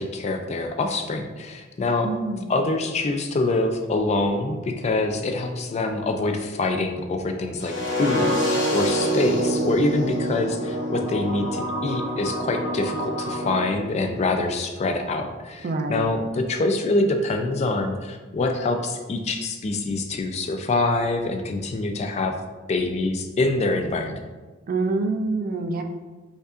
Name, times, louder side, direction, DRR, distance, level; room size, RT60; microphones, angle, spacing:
voice 1, 0.0-2.1 2.5-22.4 22.7-24.2, left 2 dB, 35° left, 6 dB, 0.3 m, -25 dB
voice 2, 2.0-2.5 15.6-16.1 24.7-25.8, right 3 dB, 45° right, 5 dB, 0.3 m, -26 dB
sound 1, 7.6-13.6, equal, 65° left, 0.8 m, -26 dB
5.2 x 2.4 x 2.4 m, 1.3 s
head